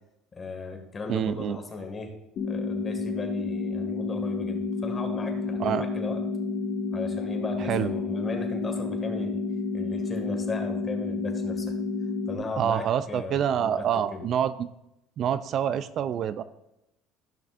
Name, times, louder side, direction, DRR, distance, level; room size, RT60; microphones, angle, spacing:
voice 1, 0.4-2.1 2.4-6.2 6.9-9.4 9.7-11.7 12.3-14.2, left 3 dB, 25° left, 4 dB, 1.9 m, -36 dB
voice 2, 1.1-1.6 5.6-5.9 7.6-7.9 12.6-14.7 15.2-16.4, right 9 dB, 50° right, 14 dB, 0.4 m, -27 dB
sound 1, 2.4-12.4, left 4 dB, 50° left, 1.3 m, -30 dB
15.0 x 6.0 x 2.5 m, 0.88 s
cardioid pair, 120°, 0 cm